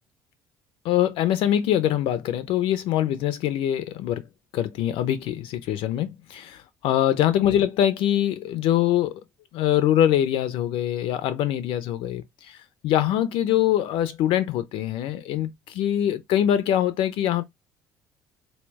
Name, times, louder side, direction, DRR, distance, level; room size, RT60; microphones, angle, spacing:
voice 1, 0.8-4.3 4.5-9.2 9.5-12.6 12.8-17.4, left 11 dB, 55° left, 0.5 m, -23 dB
4.3 x 2.1 x 3.2 m
figure-of-eight pair, 55°, 11 cm